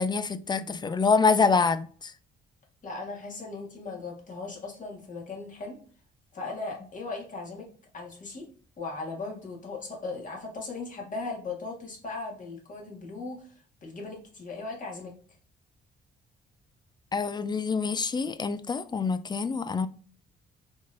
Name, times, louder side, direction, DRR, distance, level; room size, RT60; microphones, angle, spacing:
voice 1, 0.0-2.1 17.1-19.9, left 4 dB, 20° left, 0.3 m, -26 dB
voice 2, 2.8-5.8 6.3-7.7 7.9-8.5 8.8-13.5 13.8-15.1, left 3 dB, 40° left, 1.5 m, -38 dB
4.4 x 3.0 x 2.5 m
cardioid pair, 90°, 20 cm